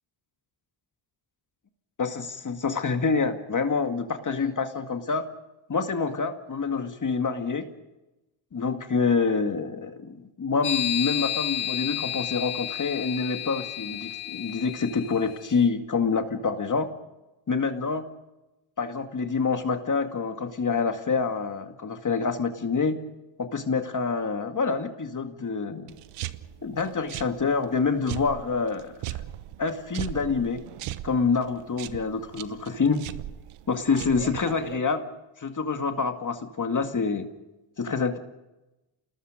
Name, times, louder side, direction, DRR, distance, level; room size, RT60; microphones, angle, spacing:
voice 1, 2.0-5.2 5.7-7.7 8.5-16.9 17.5-18.1 18.8-23.0 23.4-26.0 26.6-29.2 29.6-30.6 31.0-33.0 33.7-35.1 35.4-37.3 37.8-38.2, left 5 dB, 35° left, 6 dB, 2.2 m, -27 dB
sound 1, 10.6-15.3, left 11 dB, 70° left, 2.4 m, -31 dB
sound 2, 25.9-34.8, right 14 dB, 85° right, 1.1 m, -39 dB
28.5 x 19.5 x 5.1 m, 0.99 s
cardioid pair, 80°, 50 cm